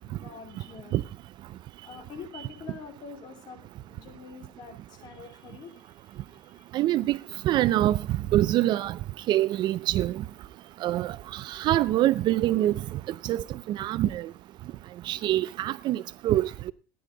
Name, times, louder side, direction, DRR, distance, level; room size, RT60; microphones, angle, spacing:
voice 1, 0.0-1.0 1.8-6.7, left 5 dB, 40° left, 3.1 m, -46 dB
voice 2, 6.7-7.2 7.4-8.0 8.3-9.0 9.3-10.2 10.8-12.8 13.2-14.3 15.1-16.7, right 14 dB, 45° right, 0.5 m, -25 dB
15.0 x 10.0 x 3.9 m
cardioid pair, 140°, 11 cm